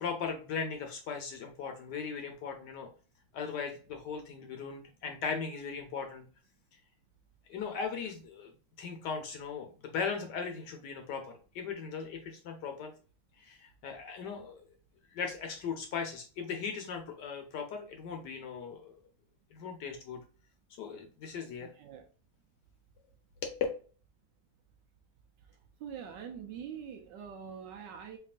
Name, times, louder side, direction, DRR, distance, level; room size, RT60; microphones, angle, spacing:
voice 1, 0.0-2.9 3.3-6.3 7.5-8.5 8.8-12.9 13.4-14.6 15.1-18.9 19.5-20.2 20.8-21.7 23.4-23.5, left 5 dB, 70° left, 4 dB, 1.1 m, -38 dB
voice 2, 21.6-22.1 25.8-28.2, right 7 dB, 75° right, 4 dB, 1.1 m, -44 dB
4.4 x 3.0 x 2.4 m, 0.38 s
omnidirectional pair, 2.2 m